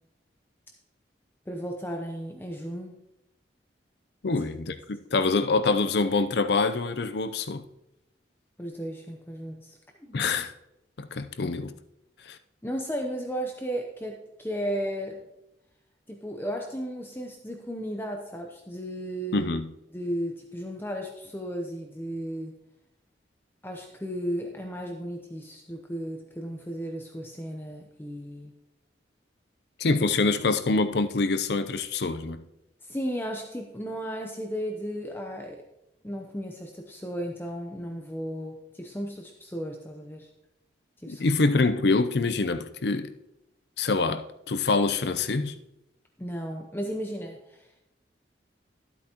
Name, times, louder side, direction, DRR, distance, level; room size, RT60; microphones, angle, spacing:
voice 1, 1.5-2.9 4.3-4.4 8.6-10.2 12.6-15.2 16.1-19.5 19.9-22.6 23.6-28.5 32.8-35.6 36.0-40.3 41.0-41.3 46.2-47.7, equal, 10° left, 0.7 m, -35 dB
voice 2, 4.2-7.6 10.1-10.5 11.0-11.7 12.3-12.4 19.3-19.7 29.8-32.4 41.1-43.1 43.8-45.6, left 3 dB, 60° left, 0.5 m, -25 dB
12.0 x 8.2 x 2.9 m
head